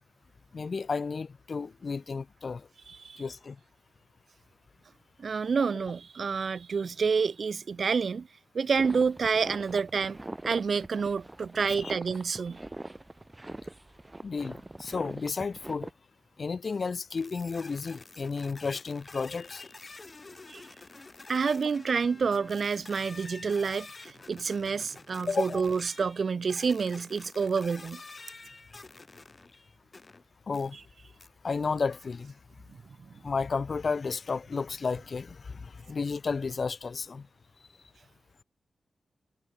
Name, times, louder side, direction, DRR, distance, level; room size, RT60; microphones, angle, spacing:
voice 1, 0.5-2.7 3.2-3.6 11.7-11.9 14.2-15.9 16.4-19.7 25.3-25.7 30.5-30.8 31.4-32.3 33.2-37.3, left 4 dB, 50° left, 1.2 m, -32 dB
voice 2, 2.9-3.2 5.2-8.3 8.5-10.2 10.4-12.6 20.5-20.6 21.3-28.0, right 5 dB, 55° right, 1.2 m, -28 dB
sound 1, 8.8-15.9, right 2 dB, 20° right, 3.7 m, -42 dB
sound 2, 17.2-30.2 30.5-30.7 31.2-31.3, left 3 dB, 30° left, 3.0 m, -49 dB
wide cardioid pair, 110°, 0 cm